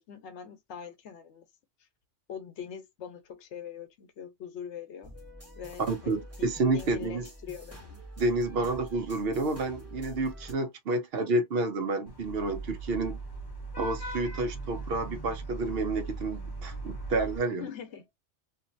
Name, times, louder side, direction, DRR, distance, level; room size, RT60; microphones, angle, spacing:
voice 1, 0.0-1.5 1.8-1.9 2.3-5.2 5.6-6.5 6.7-8.0 17.6-18.1, left 8 dB, 75° left, 1.0 m, -43 dB
sound 1, 5.0-10.5, equal, 15° right, 0.9 m, -46 dB
voice 2, 5.9-7.2 8.2-13.2 13.8-17.7, right 2 dB, 60° right, 0.8 m, -30 dB
Vehicle horn car horn honking / Traffic noise roadway noise, 12.1-17.4, right 3 dB, 25° left, 0.5 m, -39 dB
2.8 x 2.5 x 2.5 m
omnidirectional pair, 1.2 m